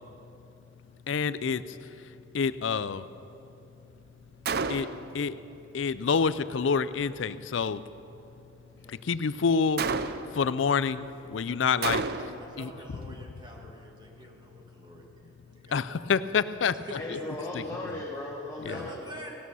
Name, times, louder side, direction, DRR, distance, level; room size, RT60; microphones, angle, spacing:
voice 1, 1.1-1.8 2.3-3.0 4.7-4.9 5.1-5.4 5.7-7.8 8.9-9.8 10.3-12.1 12.6-12.7 15.7-16.8 18.7-18.8, left 5 dB, 75° left, 15 dB, 0.4 m, -27 dB
Gunshot gunfire, 4.5-5.1 9.8-10.5 11.8-12.5, right 4 dB, 55° right, 0.5 m, -30 dB
voice 2, 12.0-16.1 16.8-17.2 18.6-19.3, right 1 dB, 25° right, 0 dB, 2.0 m, -46 dB
voice 3, 16.9-19.3, left 2 dB, 15° left, -4 dB, 1.4 m, -38 dB
17.5 x 12.5 x 5.5 m, 2.9 s
head